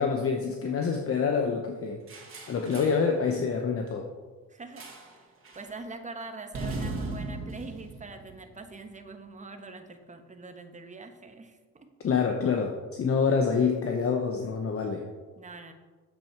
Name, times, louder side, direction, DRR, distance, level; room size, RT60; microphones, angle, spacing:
voice 1, 0.0-2.0 2.5-4.1 12.0-15.0, left 5 dB, 50° left, 3 dB, 1.0 m, -26 dB
sound 1, 2.1-3.1 4.8-5.2 5.4-5.7 6.5-8.9, right 2 dB, 45° right, 2.2 m, -38 dB
voice 2, 4.5-5.3 5.5-11.9 15.4-15.7, right 3 dB, 25° right, 6 dB, 1.1 m, -44 dB
7.8 x 7.6 x 4.6 m, 1.3 s
cardioid pair, 90°, 30 cm